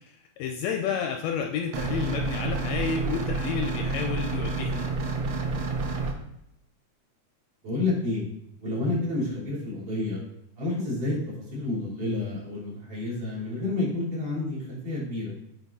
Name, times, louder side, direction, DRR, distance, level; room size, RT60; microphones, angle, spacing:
voice 1, 0.4-4.9, left 6 dB, 80° left, 4 dB, 1.6 m, -30 dB
sound 1, 1.7-6.1, right 3 dB, 75° right, 1.2 m, -29 dB
voice 2, 7.6-8.3 8.6-10.2 10.6-11.2 11.5-15.4, left 2 dB, 50° right, -9 dB, 3.8 m, -29 dB
8.6 x 3.5 x 4.1 m, 0.78 s
omnidirectional pair, 3.4 m